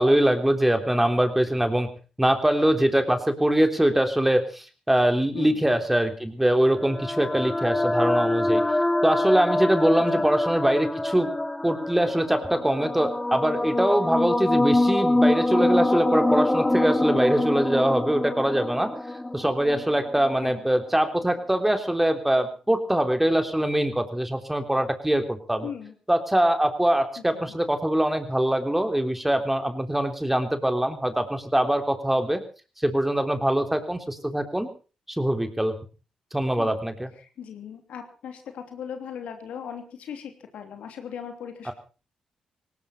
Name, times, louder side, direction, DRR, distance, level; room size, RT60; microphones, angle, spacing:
voice 1, 0.0-1.9 2.2-8.6 9.0-11.3 11.6-18.9 19.3-25.7 26.1-32.4 32.8-34.7 35.1-35.7 36.3-37.1 41.7-41.8, right 1 dB, 10° right, 7 dB, 3.5 m, -23 dB
sound 1, 6.7-20.3, left 2 dB, 15° left, 2.1 m, -25 dB
voice 2, 25.6-25.9 27.3-27.5 36.6-36.8 37.2-41.7, left 8 dB, 75° left, 6 dB, 3.0 m, -38 dB
18.5 x 18.0 x 4.4 m, 0.37 s
supercardioid pair, 50°, 2 cm